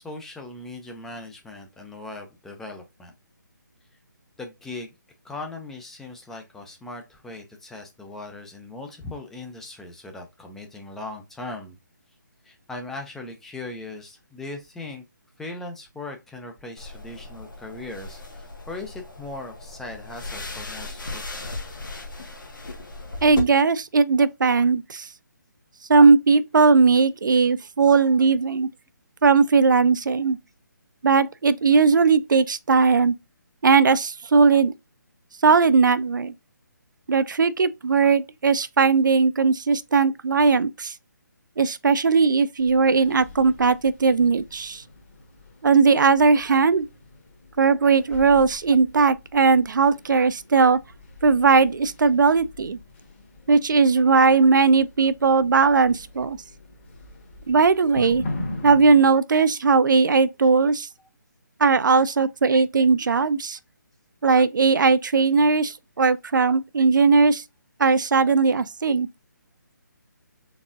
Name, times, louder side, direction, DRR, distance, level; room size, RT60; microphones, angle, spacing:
voice 1, 0.0-3.1 4.4-4.9 5.2-11.8 12.4-15.0 15.4-21.4 58.0-58.1, left 2 dB, 5° left, 0.4 m, -39 dB
sound 1, 16.8-23.4, left 3 dB, 80° left, 1.4 m, -37 dB
voice 2, 23.2-25.1 25.9-28.7 29.2-30.4 31.0-33.1 33.6-34.7 35.4-36.3 37.1-40.9 41.6-44.8 45.6-46.9 47.6-50.8 51.2-52.8 53.5-56.4 57.5-58.2 58.6-60.9 61.6-63.6 64.2-67.4 67.8-69.1, right 4 dB, 75° right, 0.4 m, -18 dB
sound 2, 42.6-59.1, left 2 dB, 35° left, 1.4 m, -41 dB
4.0 x 3.4 x 2.4 m
figure-of-eight pair, 150°, 10 cm